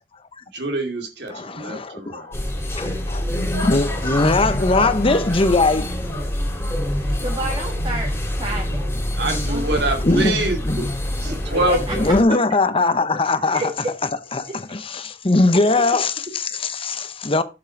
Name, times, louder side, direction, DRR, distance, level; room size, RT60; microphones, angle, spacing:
voice 1, 0.5-2.4 9.1-10.6 11.2-12.0, right 1 dB, 65° right, 2.6 m, -25 dB
voice 2, 1.3-2.3 2.7-5.9 10.0-10.9 12.0-13.6 14.3-17.4, left 2 dB, 30° left, 0.8 m, -20 dB
sound 1, 2.3-12.2, left 1 dB, 15° left, 2.7 m, -25 dB
voice 3, 7.2-9.2 9.5-9.8 11.2-11.3 11.7-11.8 13.5-13.7, right 1 dB, 30° right, 1.6 m, -30 dB
7.5 x 7.2 x 4.6 m
head